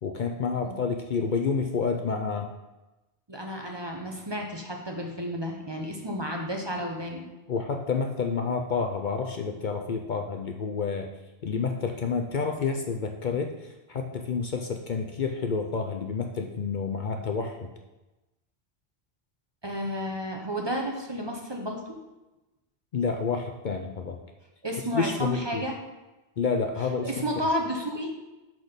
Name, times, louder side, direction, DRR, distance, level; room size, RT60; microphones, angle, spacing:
voice 1, 0.0-2.5 7.5-11.1 11.4-17.7 22.9-24.2 24.9-25.7 26.4-27.2, left 5 dB, 55° left, 4 dB, 0.7 m, -29 dB
voice 2, 3.3-7.3 19.6-21.9 24.6-25.8 27.0-28.1, equal, 25° right, 1 dB, 0.9 m, -31 dB
6.2 x 6.0 x 5.1 m, 1.1 s
omnidirectional pair, 1.1 m